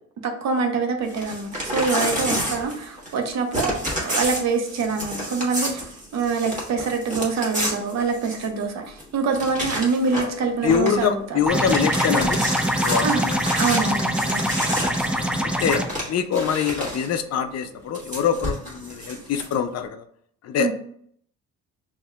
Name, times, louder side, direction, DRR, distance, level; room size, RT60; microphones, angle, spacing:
voice 1, 0.2-11.4 13.0-13.3 13.6-14.5 20.6-20.7, right 4 dB, 65° right, 4 dB, 0.8 m, -25 dB
Crumpling crinkling / Tearing, 1.1-3.2 3.5-8.6 9.0-9.1 9.3-10.4 10.6-11.0 11.4-17.1 17.9-19.5, equal, 25° right, 1.4 m, -29 dB
voice 2, 10.6-12.4 12.8-13.4 15.1-15.8 16.1-20.0 20.4-20.7, left 7 dB, 55° left, 8 dB, 0.5 m, -24 dB
sound 1, 11.5-15.8, equal, 5° right, 0.4 m, -24 dB
5.4 x 3.0 x 2.3 m, 0.65 s
cardioid pair, 90°, 30 cm